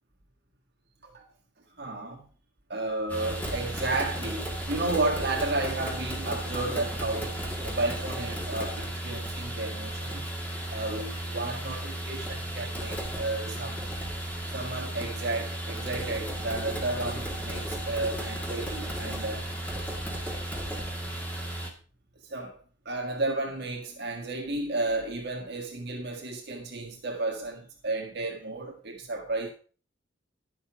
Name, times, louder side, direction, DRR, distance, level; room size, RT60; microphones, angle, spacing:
voice 1, 1.8-2.2 2.7-10.2 10.7-13.9 14.5-19.7 22.3-22.6 22.8-29.5, right 2 dB, 60° right, 1.7 m, -32 dB
sound 1, 3.1-21.7, right 1 dB, 10° left, 2.1 m, -34 dB
11.5 x 7.1 x 4.9 m
head